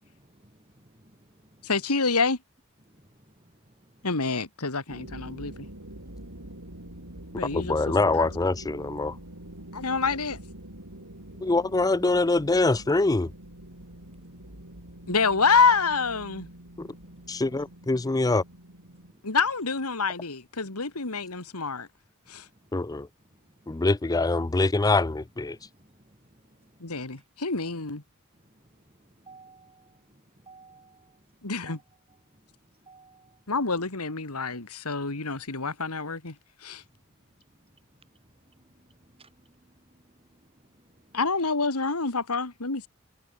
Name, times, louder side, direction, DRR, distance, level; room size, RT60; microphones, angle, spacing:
voice 1, 0.0-1.8 2.8-4.3 5.9-7.7 9.2-10.0 10.8-11.9 13.7-15.4 16.7-18.4 18.8-19.4 22.2-24.1 25.2-27.7 28.3-33.6 34.7-34.8 36.7-41.4, right 2 dB, 25° right, 5.4 m, -60 dB
voice 2, 1.6-2.4 4.0-5.7 7.3-7.8 8.1-8.3 9.7-10.4 15.1-16.5 19.2-21.9 22.3-22.5 26.8-28.0 31.4-31.8 33.5-36.3 36.6-36.8 41.1-42.9, left 4 dB, 80° left, 2.4 m, -27 dB
sound 1, 4.9-19.1, right 1 dB, 80° right, 6.4 m, -45 dB
voice 3, 7.5-9.1 11.4-13.3 16.8-16.9 17.3-18.4 22.7-23.1 23.7-25.6, left 2 dB, 15° left, 0.5 m, -24 dB
head